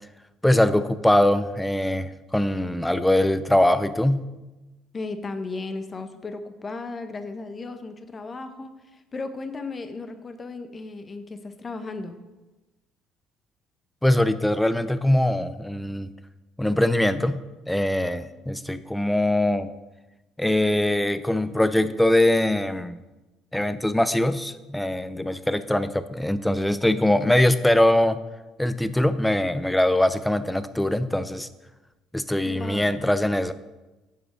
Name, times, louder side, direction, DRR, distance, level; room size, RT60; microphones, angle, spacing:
voice 1, 0.4-4.3 14.0-16.1 16.6-19.7 20.4-23.0 23.5-28.2 28.6-31.5 32.1-33.5, left 1 dB, 5° left, 13 dB, 0.6 m, -22 dB
voice 2, 4.9-12.2 32.4-32.9, left 3 dB, 30° left, 8 dB, 1.1 m, -35 dB
9.2 x 5.0 x 6.5 m, 1.1 s
hypercardioid pair, 60°, 0 cm